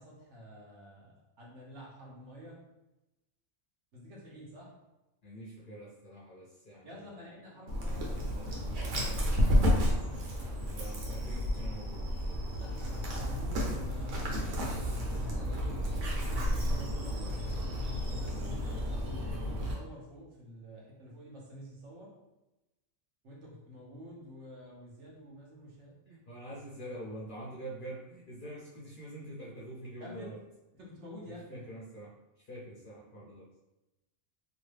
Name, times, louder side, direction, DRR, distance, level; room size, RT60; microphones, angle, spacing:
voice 1, 0.0-2.6 3.9-4.7 6.8-8.9 12.6-15.9 16.6-17.4 18.0-22.1 23.2-26.0 30.0-30.4 30.7-31.6, equal, 65° right, -4 dB, 1.1 m, -49 dB
voice 2, 5.2-7.0 10.7-12.1 26.1-30.4 31.2-32.1 32.4-33.5, right 1 dB, 50° left, -6 dB, 0.6 m, -45 dB
Dog, 7.7-19.7, equal, 90° right, 1.2 m, -31 dB
3.0 x 2.3 x 3.2 m, 0.97 s
omnidirectional pair, 1.4 m